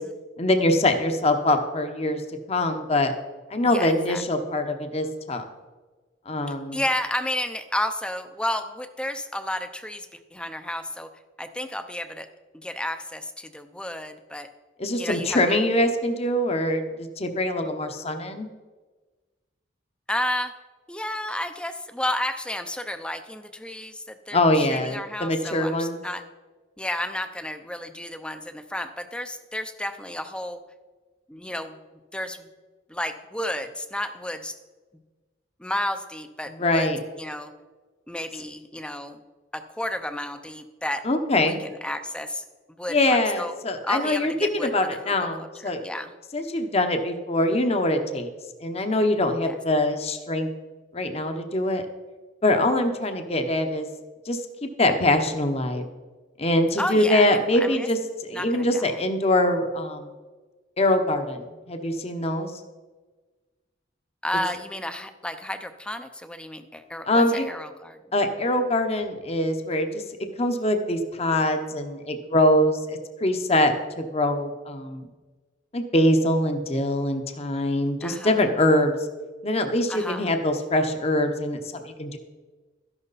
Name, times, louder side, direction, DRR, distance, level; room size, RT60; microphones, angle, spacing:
voice 1, 0.4-2.2 2.5-3.1 3.5-5.4 6.3-6.8 14.8-18.5 24.3-26.0 36.6-37.0 41.0-41.6 42.9-45.8 46.3-48.3 48.6-50.5 50.9-51.8 52.4-53.9 54.3-55.9 56.4-60.1 60.8-62.5 67.0-67.5 68.1-70.0 70.4-75.1 75.7-78.9 79.4-82.2, left 1 dB, 35° left, 6 dB, 0.9 m, -23 dB
voice 2, 3.6-4.2 6.7-11.1 11.4-12.3 12.5-14.5 15.0-15.6 20.1-20.5 20.9-26.2 26.8-30.6 31.3-31.8 32.1-32.5 32.9-34.6 35.6-36.9 37.2-37.5 38.1-39.2 39.5-41.1 41.4-43.5 43.8-45.1 45.6-46.1 49.4-49.6 56.8-57.9 58.3-59.0 64.2-68.0 78.0-78.3 79.9-80.3, left 1 dB, 5° left, 9 dB, 0.6 m, -32 dB
13.0 x 11.0 x 4.1 m, 1.3 s
head